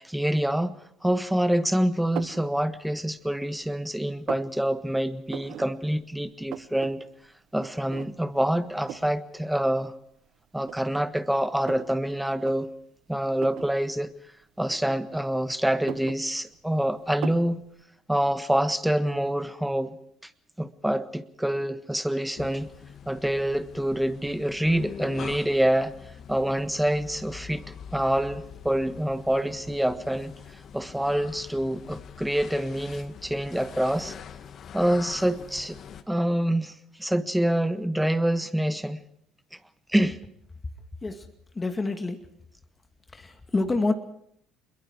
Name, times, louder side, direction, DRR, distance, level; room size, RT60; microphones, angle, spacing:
voice 1, 0.0-7.0 7.5-9.9 10.5-12.7 13.1-14.1 14.6-17.6 18.1-20.0 20.2-20.3 20.6-22.7 23.1-25.9 26.3-34.1 34.7-35.8 36.1-39.0 39.9-40.2, right 1 dB, 5° right, 1.5 m, -26 dB
sound 1, 2.2-2.5 3.0-3.7 3.9-4.5 5.3-5.7 6.0-6.1 6.3-6.9 7.3-7.4 7.9-8.4 8.9-9.2 10.0-10.1 10.6-11.9 12.3-12.6 13.4-13.7 14.7-15.3 15.7-16.7 17.2-17.5, right 12 dB, 60° right, 0.9 m, -38 dB
sound 2, 22.4-36.0, left 7 dB, 50° left, 1.6 m, -44 dB
voice 2, 41.5-42.3 43.1-43.9, left 3 dB, 25° left, 2.2 m, -27 dB
27.5 x 22.0 x 4.7 m
hypercardioid pair, 55°, 0 cm